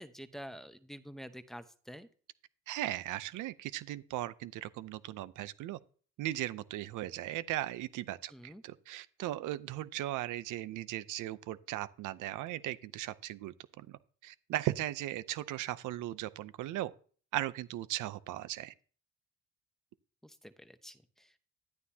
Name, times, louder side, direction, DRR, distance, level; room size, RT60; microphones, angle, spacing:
voice 1, 0.0-2.1 8.3-8.6 20.2-21.4, equal, ahead, 0.9 m, -48 dB
voice 2, 2.7-5.8 6.2-16.9 17.3-18.7, right 14 dB, 90° right, 0.7 m, -37 dB
11.5 x 9.3 x 2.8 m
cardioid pair, 90°, 30 cm